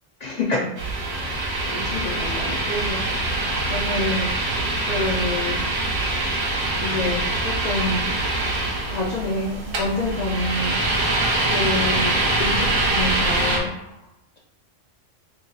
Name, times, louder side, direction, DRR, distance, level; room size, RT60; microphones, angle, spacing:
voice 1, 0.2-0.7 1.3-4.3 4.9-5.6 6.8-8.1 8.9-10.8 11.5-13.7, left 2 dB, 65° left, -3 dB, 0.4 m, -27 dB
sound 1, 0.8-13.6, right 2 dB, 85° right, 1.2 m, -24 dB
2.9 x 2.6 x 3.9 m, 0.87 s
omnidirectional pair, 1.3 m